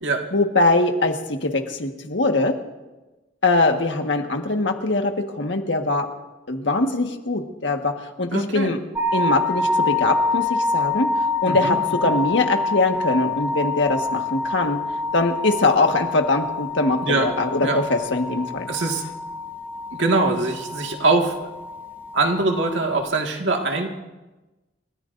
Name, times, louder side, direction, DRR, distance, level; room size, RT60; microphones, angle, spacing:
voice 1, 0.3-2.5 3.4-6.1 6.5-8.8 9.1-11.1 11.4-14.8 15.1-18.7, left 2 dB, 75° left, 4 dB, 1.5 m, -22 dB
voice 2, 8.3-8.7 11.5-11.8 17.0-17.3 17.6-17.8 18.7-19.0 20.0-21.5 22.1-23.9, right 3 dB, 80° right, 2 dB, 1.8 m, -22 dB
sound 1, 9.0-23.0, left 3 dB, 10° right, 0.6 m, -27 dB
29.5 x 14.0 x 2.6 m, 1.1 s
head